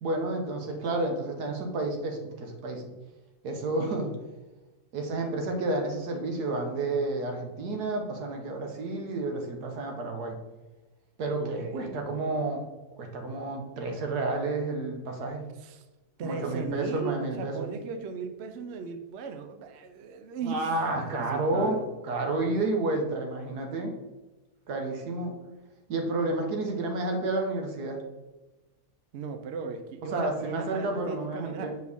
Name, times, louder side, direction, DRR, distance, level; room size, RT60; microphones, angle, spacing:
voice 1, 0.0-2.9 3.4-4.1 4.9-10.4 11.2-12.7 13.0-15.4 16.2-17.7 20.4-23.9 24.7-25.3 25.9-28.0 30.1-31.7, right 2 dB, 85° right, 3 dB, 1.6 m, -30 dB
voice 2, 11.4-12.3 15.6-15.8 16.2-20.7 21.3-21.9 29.1-31.7, right 5 dB, 60° right, 7 dB, 0.7 m, -37 dB
6.3 x 4.6 x 3.5 m, 1.1 s
omnidirectional pair, 1.6 m